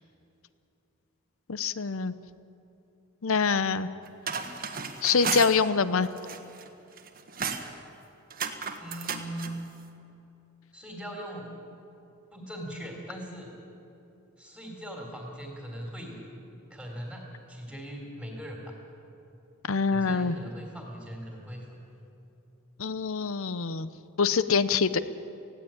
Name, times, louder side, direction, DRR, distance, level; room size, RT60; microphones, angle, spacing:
voice 1, 1.5-2.1 3.2-3.9 5.0-6.1 19.7-20.4 22.8-23.9 24.2-25.0, left 5 dB, 65° left, 14 dB, 0.7 m, -25 dB
sound 1, 4.0-5.5 6.0-6.7 7.0-7.7 8.3-9.5, right 6 dB, 45° right, 1.5 m, -33 dB
voice 2, 8.8-9.7 10.7-11.7 12.3-13.5 14.4-16.2 16.7-18.7 19.9-21.7, equal, ahead, -1 dB, 3.1 m, -40 dB
19.5 x 16.0 x 8.9 m, 2.9 s
head